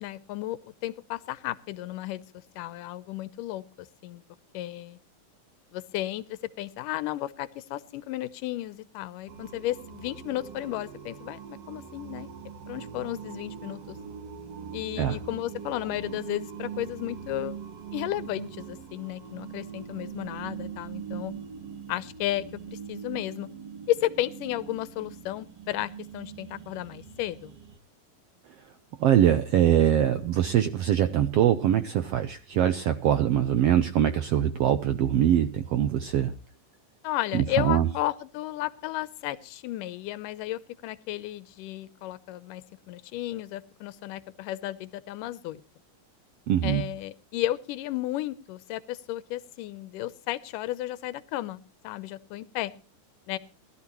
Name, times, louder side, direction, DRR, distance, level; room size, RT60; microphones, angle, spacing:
voice 1, 0.0-2.2 2.6-4.2 4.5-5.0 5.7-12.3 12.7-14.0 14.7-17.6 17.9-21.4 21.9-23.5 23.9-27.5 37.0-45.6 46.6-52.7 53.3-53.4, left 15 dB, 85° left, 16 dB, 2.4 m, -33 dB
sound 1, 9.3-27.8, right 7 dB, 55° right, 2.0 m, -42 dB
voice 2, 29.0-36.3 37.3-37.9 46.5-46.9, right 10 dB, 80° right, 10 dB, 1.4 m, -23 dB
20.5 x 13.0 x 3.0 m, 0.36 s
omnidirectional pair, 3.7 m